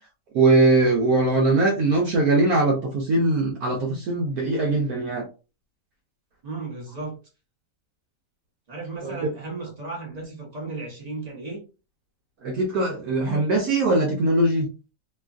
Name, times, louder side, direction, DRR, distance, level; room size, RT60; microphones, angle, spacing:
voice 1, 0.3-5.2 12.4-14.7, right 2 dB, 70° right, 1.0 m, -21 dB
voice 2, 6.4-7.2 8.7-11.6, right 3 dB, 30° right, 0.8 m, -35 dB
3.0 x 2.3 x 2.4 m
omnidirectional pair, 1.8 m